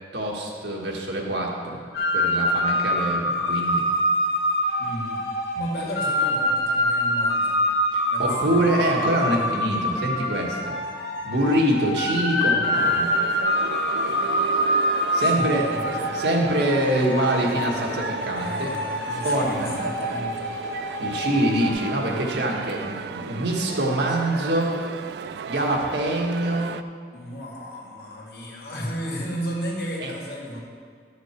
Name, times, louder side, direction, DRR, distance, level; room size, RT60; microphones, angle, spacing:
voice 1, 0.1-1.8 2.1-3.8 5.5-5.7 7.9-10.7 11.2-13.1 15.1-15.7 16.1-18.7 19.2-19.7 21.0-24.7 25.5-26.8 30.0-30.1, right 1 dB, 85° right, -1 dB, 1.7 m, -25 dB
sound 1, 1.9-21.7, left 1 dB, 90° left, 1.5 m, -25 dB
voice 2, 4.8-5.2 5.6-7.6 8.1-8.7 15.2-16.2 18.4-20.5 27.1-30.6, equal, 60° left, -2 dB, 2.1 m, -34 dB
sound 2, 12.7-26.8, right 6 dB, 70° right, 0.3 m, -35 dB
12.5 x 6.8 x 4.5 m, 2.1 s
head